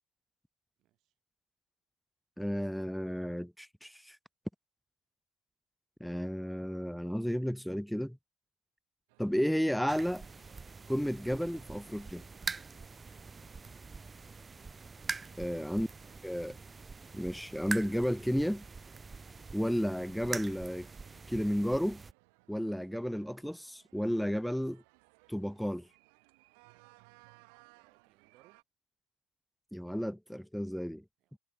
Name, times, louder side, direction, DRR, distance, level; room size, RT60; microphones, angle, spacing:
voice 1, 0.8-1.1 27.7-28.6 31.2-31.4, right 15 dB, 55° right, 4.6 m, -70 dB
voice 2, 2.4-4.2 6.0-8.2 9.2-10.3 10.9-12.2 15.4-15.9 16.2-16.6 17.1-18.6 19.5-20.9 21.3-22.0 22.5-24.8 25.3-25.9 29.7-31.0, equal, ahead, 0.4 m, -32 dB
sound 1, 9.1-28.6, right 33 dB, 80° right, 5.9 m, -65 dB
sound 2, 9.9-22.1, right 4 dB, 15° right, 0.9 m, -44 dB
supercardioid pair, 125°, 0 cm